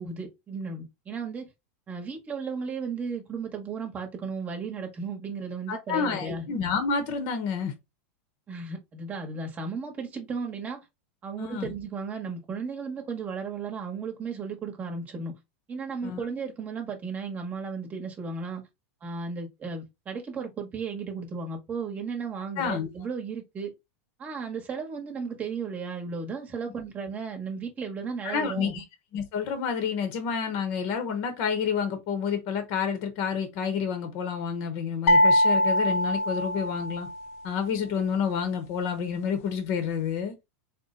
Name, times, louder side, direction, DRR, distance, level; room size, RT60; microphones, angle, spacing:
voice 1, 0.0-1.4 1.9-6.4 8.5-10.8 11.2-15.3 15.7-18.6 19.0-23.7 24.2-28.8, right 5 dB, 20° right, 1.1 m, -35 dB
voice 2, 5.7-7.7 11.4-11.7 16.0-16.2 22.6-22.9 28.2-28.8 29.1-37.1 37.4-40.3, left 6 dB, 50° left, 0.9 m, -29 dB
sound 1, 35.1-37.2, left 1 dB, 85° left, 0.8 m, -22 dB
4.1 x 2.2 x 3.7 m
supercardioid pair, 150°, 7 cm